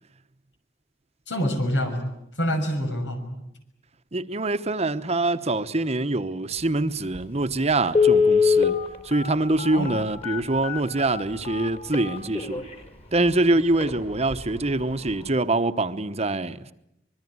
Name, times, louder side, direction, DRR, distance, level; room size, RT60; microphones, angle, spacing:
voice 1, 1.3-3.4 9.7-10.0, equal, 90° left, 6.3 m, -27 dB
voice 2, 4.1-8.8 9.0-12.6 13.1-16.7, right 2 dB, 35° right, 1.0 m, -24 dB
Telephone, 7.1-7.2 7.9-12.7 13.3-13.4 13.7-13.9 14.3-14.6 14.9-15.0, left 5 dB, 35° left, 4.0 m, -23 dB
25.0 x 22.0 x 9.6 m
head